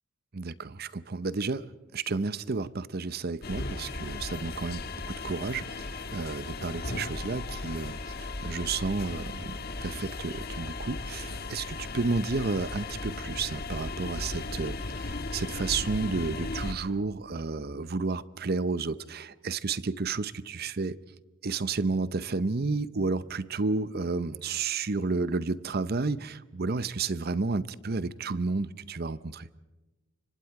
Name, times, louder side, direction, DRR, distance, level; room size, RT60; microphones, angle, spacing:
voice 1, 0.3-1.6 1.9-21.0 21.4-29.5, right 3 dB, 50° right, 0.7 m, -31 dB
sound 1, 3.4-16.7, left 3 dB, 50° left, 1.5 m, -36 dB
29.0 x 25.0 x 4.8 m
head